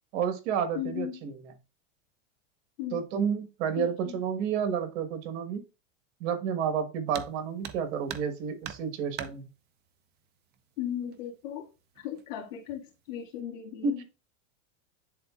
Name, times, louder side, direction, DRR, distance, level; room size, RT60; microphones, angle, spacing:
voice 1, 0.1-1.3 2.9-5.6 6.2-9.4 13.8-14.0, right 7 dB, 60° right, 1.5 m, -30 dB
voice 2, 0.7-1.2 2.8-3.0 3.8-4.2 10.8-11.7 12.0-14.0, left 10 dB, 70° left, 2.0 m, -37 dB
sound 1, 7.1-7.4 7.6-8.4 8.6-9.4 10.5-10.6 11.1-11.2 12.0-12.3 12.7-13.1, right 9 dB, 25° right, 0.5 m, -40 dB
10.5 x 3.8 x 2.4 m
supercardioid pair, 130°, 39 cm